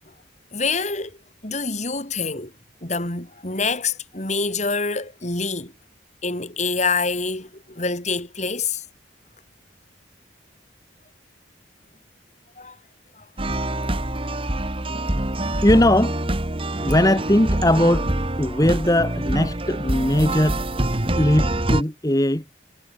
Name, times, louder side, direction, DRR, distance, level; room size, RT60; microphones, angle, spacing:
voice 1, 0.5-1.2 1.4-2.5 2.8-5.7 6.2-8.8 12.6-12.8 13.2-13.3 14.2-14.3, left 4 dB, 40° left, 4.1 m, -26 dB
sound 1, 13.4-21.8, right 1 dB, 30° right, 1.9 m, -25 dB
voice 2, 13.5-14.4 15.4-16.2 16.8-18.1 18.4-20.6 21.1-22.4, left 1 dB, 20° left, 1.7 m, -20 dB
head